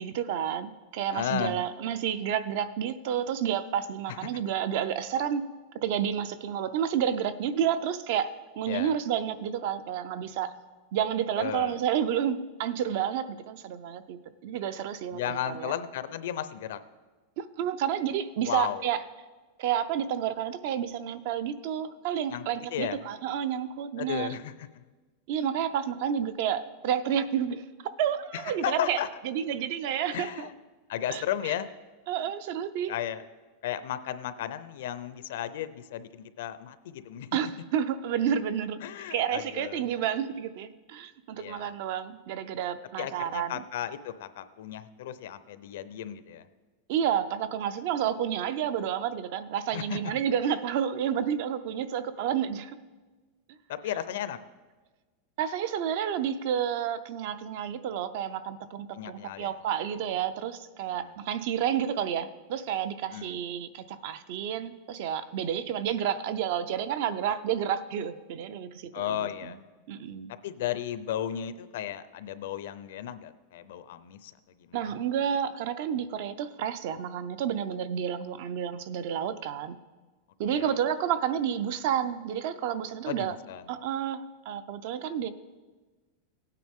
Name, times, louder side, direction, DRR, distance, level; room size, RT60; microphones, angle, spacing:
voice 1, 0.0-5.4 5.7-10.5 10.9-15.7 17.4-19.0 19.6-24.4 25.3-27.6 28.0-29.0 29.2-30.5 31.1-31.2 32.1-32.9 37.3-38.8 39.1-43.6 46.9-52.8 55.4-69.6 69.9-70.3 74.7-79.8 80.4-83.4 83.7-85.3, right 9 dB, 45° right, 13 dB, 0.5 m, -30 dB
voice 2, 1.1-1.6 4.2-4.3 8.7-8.9 11.4-11.8 15.1-16.8 18.4-18.8 22.3-23.0 24.0-24.7 28.3-29.1 30.1-30.5 30.9-31.7 32.2-32.3 32.9-33.2 33.6-37.3 38.8-39.8 41.4-41.7 43.0-46.5 49.7-50.0 53.7-54.4 58.9-59.5 60.9-61.1 63.1-63.4 68.9-69.6 70.4-74.3 74.6-75.0 80.5-80.7 83.1-83.7, left 10 dB, 60° left, 13 dB, 0.6 m, -34 dB
16.5 x 9.1 x 3.6 m, 1.3 s
supercardioid pair, 180°, 0 cm